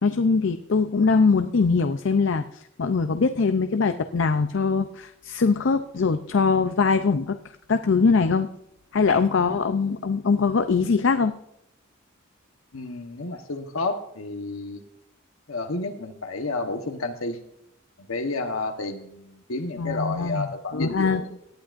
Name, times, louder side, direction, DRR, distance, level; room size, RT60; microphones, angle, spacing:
voice 1, 0.0-7.4 7.7-8.5 8.9-11.3 19.8-21.2, left 4 dB, 65° left, 9 dB, 0.5 m, -22 dB
voice 2, 12.7-14.8 15.5-17.4 18.1-21.3, left 3 dB, 90° left, 5 dB, 1.1 m, -31 dB
18.5 x 11.5 x 2.5 m, 0.80 s
head